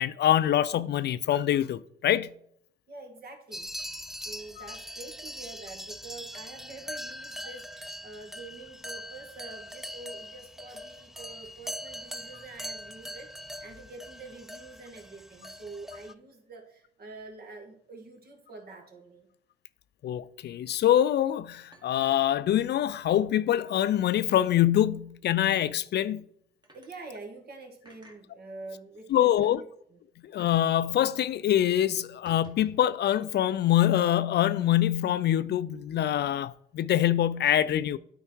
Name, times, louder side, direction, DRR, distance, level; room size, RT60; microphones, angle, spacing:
voice 1, 0.0-2.3 4.6-4.7 20.0-26.2 29.1-29.6 30.2-38.0, left 11 dB, 60° left, 0.4 m, -25 dB
voice 2, 2.9-3.7 4.2-19.3 26.7-29.5 29.9-30.0, right 3 dB, 50° right, 2.0 m, -46 dB
sound 1, 3.5-16.1, equal, ahead, 0.4 m, -42 dB
sound 2, 21.7-22.8 23.1-23.2 23.6-23.8 24.3-24.6 25.4-25.7 26.6-26.9 27.8-28.2 28.9-29.0 29.3-29.5 30.4-30.6 30.9-31.0 31.3-31.5 32.1-32.9, right 1 dB, 20° right, 2.0 m, -54 dB
9.0 x 4.7 x 4.6 m
cardioid pair, 90°, 20 cm